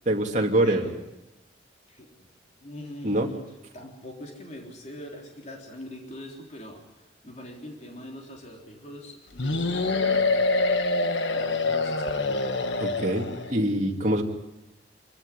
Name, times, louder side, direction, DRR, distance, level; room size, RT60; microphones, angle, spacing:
voice 1, 0.1-0.8 3.0-3.3 12.8-14.2, right 1 dB, 40° right, 1 dB, 2.6 m, -24 dB
voice 2, 0.6-1.1 1.9-2.3 2.6-10.5 11.3-12.7 13.4-13.7, left 1 dB, 35° left, 0 dB, 3.8 m, -42 dB
sound 1, 9.4-13.6, left 3 dB, 70° left, 1.3 m, -25 dB
26.5 x 15.0 x 9.9 m, 0.98 s
head